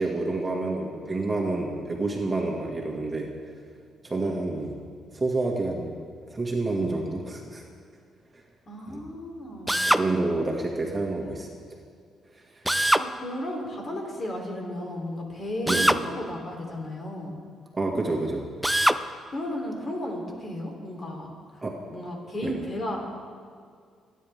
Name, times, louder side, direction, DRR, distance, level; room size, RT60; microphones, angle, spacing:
voice 1, 0.0-3.3 4.0-4.8 5.1-5.9 6.3-7.6 8.9-9.0 9.9-11.5 15.7-15.9 17.7-18.5 21.6-21.8 22.4-22.5, right 2 dB, 25° right, -1 dB, 2.2 m, -28 dB
voice 2, 8.7-9.9 11.2-11.3 12.9-17.3 19.3-21.3 21.5-23.1, left 1 dB, 40° left, 0 dB, 3.6 m, -34 dB
Drill, 9.7-10.1 12.7-13.1 15.7-16.0 18.6-19.0, right 1 dB, 5° right, 0.5 m, -22 dB
26.5 x 10.0 x 3.7 m, 2.1 s
cardioid pair, 90°, 0 cm